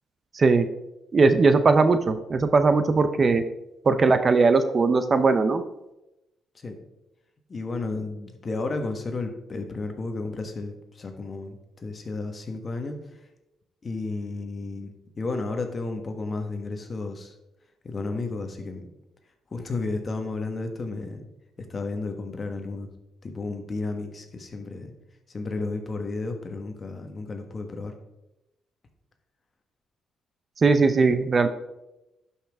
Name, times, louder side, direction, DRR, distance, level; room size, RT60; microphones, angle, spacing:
voice 1, 0.3-0.7 1.1-3.4 3.8-5.6 30.6-31.5, right 4 dB, 40° right, 10 dB, 0.6 m, -19 dB
voice 2, 7.5-13.0 13.8-14.9 15.2-17.3 17.8-18.9 19.5-21.2 21.6-22.9 23.2-24.9 25.3-27.9, left 3 dB, 35° left, 5 dB, 1.4 m, -32 dB
11.5 x 5.7 x 3.5 m, 0.92 s
cardioid pair, 90°, 0 cm